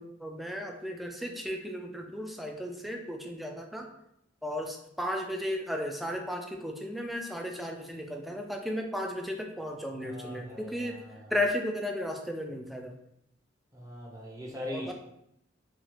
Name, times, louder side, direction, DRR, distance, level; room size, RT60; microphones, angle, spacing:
voice 1, 0.0-3.9 4.4-11.0 11.3-12.9 14.7-14.9, left 1 dB, ahead, 2 dB, 0.3 m, -34 dB
voice 2, 10.0-11.3 13.7-14.9, left 1 dB, 20° right, -2 dB, 0.7 m, -41 dB
3.0 x 2.4 x 2.9 m, 0.78 s
head